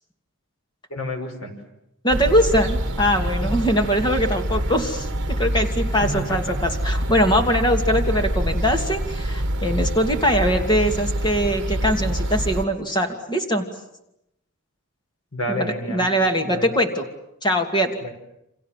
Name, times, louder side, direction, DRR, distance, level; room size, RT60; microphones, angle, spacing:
voice 1, 0.9-1.5 6.0-6.6 15.3-16.1 16.4-16.7 18.0-18.1, left 1 dB, 70° left, 5 dB, 5.3 m, -29 dB
voice 2, 2.0-13.7 15.6-17.1 17.4-18.0, equal, 20° left, 5 dB, 2.6 m, -22 dB
sound 1, 2.1-12.6, right 1 dB, 55° right, 1.6 m, -26 dB
29.5 x 26.0 x 7.6 m, 0.85 s
head